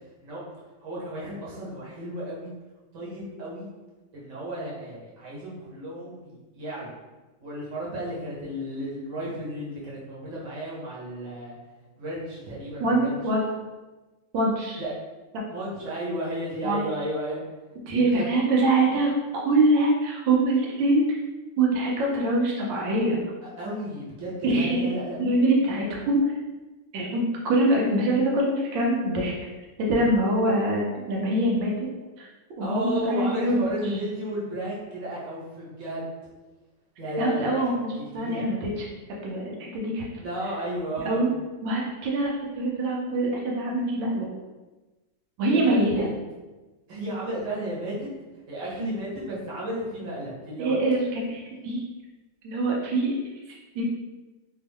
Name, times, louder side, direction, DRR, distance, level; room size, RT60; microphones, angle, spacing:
voice 1, 0.8-2.5 2.9-3.6 4.1-6.9 7.4-11.6 12.0-13.2 14.8-14.9 15.5-17.4 17.8-18.3 23.4-25.2 25.7-25.8 32.6-36.1 37.0-37.6 38.0-38.4 40.2-41.3 45.5-46.1 46.9-48.1 48.5-50.8, right 1 dB, 50° right, -6 dB, 1.2 m, -33 dB
voice 2, 12.8-13.4 14.3-14.8 16.6-16.8 17.9-21.2 21.6-23.2 24.4-24.9 25.2-26.2 26.9-29.3 29.8-31.9 32.2-32.3 32.6-33.6 37.2-37.7 38.1-38.9 39.2-40.1 41.0-41.3 41.6-44.3 45.4-46.1 50.6-51.8 52.4-53.1 53.5-53.8, right 2 dB, 90° right, -2 dB, 1.5 m, -24 dB
3.4 x 2.3 x 3.4 m, 1.2 s
omnidirectional pair, 2.0 m